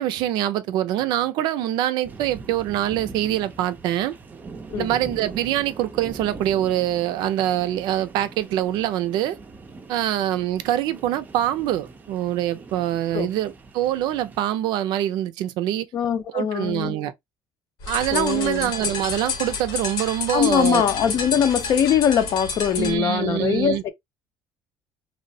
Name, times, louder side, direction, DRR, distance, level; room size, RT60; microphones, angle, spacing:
voice 1, 0.0-4.1 4.8-9.4 9.9-15.9 16.3-17.1 17.9-20.8 22.8-23.8, right 12 dB, 80° right, 0.4 m, -24 dB
sound 1, 2.0-14.4, right 4 dB, 25° right, 0.4 m, -42 dB
voice 2, 15.9-16.9 18.1-18.7 20.3-23.9, left 8 dB, 55° left, 0.5 m, -22 dB
sound 2, 17.8-23.0, left 5 dB, 75° left, 0.9 m, -30 dB
3.0 x 2.0 x 2.6 m
cardioid pair, 125°, 8 cm